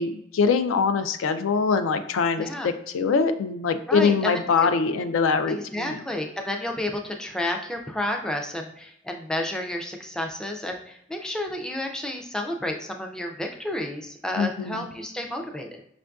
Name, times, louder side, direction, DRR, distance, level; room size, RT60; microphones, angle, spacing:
voice 1, 0.0-6.0 14.4-14.9, left 5 dB, 85° left, 9 dB, 0.4 m, -23 dB
voice 2, 2.4-2.7 3.9-4.3 4.6-4.7 5.5-15.8, left 1 dB, 5° left, 2 dB, 0.3 m, -31 dB
5.1 x 2.4 x 2.3 m, 0.73 s
head